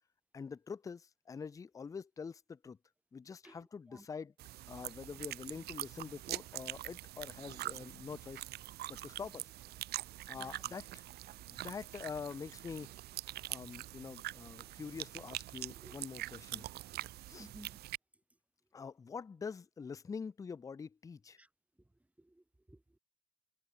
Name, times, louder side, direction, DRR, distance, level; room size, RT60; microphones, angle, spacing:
voice 1, 0.3-2.8 3.1-4.3 4.7-8.4 8.9-9.5 10.3-11.0 11.5-12.9 13.5-16.6 17.3-17.5 18.7-21.4, left 5 dB, 20° left, 0.4 m, -45 dB
voice 2, 3.4-4.1 10.3-10.7 15.8-16.0 16.6-16.7 17.4-17.8 21.4-21.5 21.8-21.9 22.2-23.0, right 1 dB, 10° right, 3.5 m, -57 dB
sound 1, 4.4-18.0, right 15 dB, 70° right, 1.1 m, -44 dB
cardioid pair, 110°, 17 cm